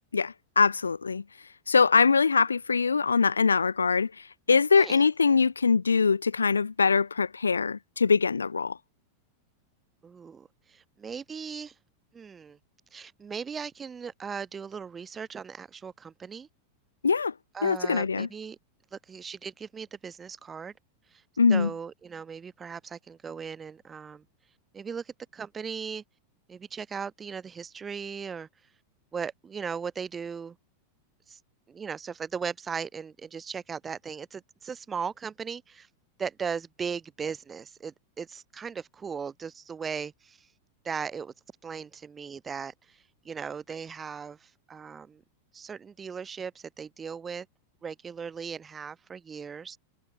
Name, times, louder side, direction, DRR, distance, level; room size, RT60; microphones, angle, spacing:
voice 1, 0.1-1.2 1.7-4.1 4.5-8.8 17.0-17.3 17.6-18.3 21.4-21.7, left 5 dB, 75° left, 0.7 m, -23 dB
voice 2, 10.0-11.7 12.1-12.6 12.9-16.5 17.5-18.6 18.9-20.7 21.5-24.2 24.7-26.0 26.5-28.5 29.1-30.6 31.3-31.4 31.7-35.9 36.2-40.4 40.8-41.3 41.6-43.0 43.2-45.2 45.5-47.5 47.8-49.8, right 6 dB, 20° right, 4.0 m, -38 dB
figure-of-eight pair, 90°, 0 cm